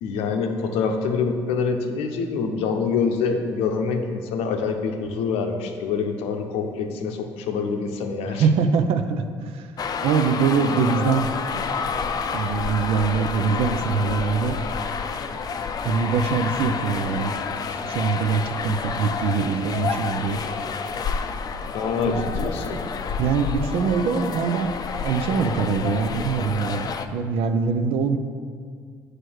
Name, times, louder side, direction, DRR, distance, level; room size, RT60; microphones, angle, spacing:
voice 1, 0.0-8.5 21.7-22.8, left 5 dB, 75° left, 4 dB, 0.7 m, -25 dB
voice 2, 8.3-9.7 10.0-11.6 12.3-14.6 15.8-17.3 17.8-20.4 22.1-22.5 23.2-24.7 25.0-28.2, right 5 dB, 70° right, 9 dB, 0.5 m, -23 dB
sound 1, 9.8-27.1, left 5 dB, 40° left, 0.5 m, -29 dB
7.6 x 3.3 x 6.3 m, 2.1 s
supercardioid pair, 70°, 10 cm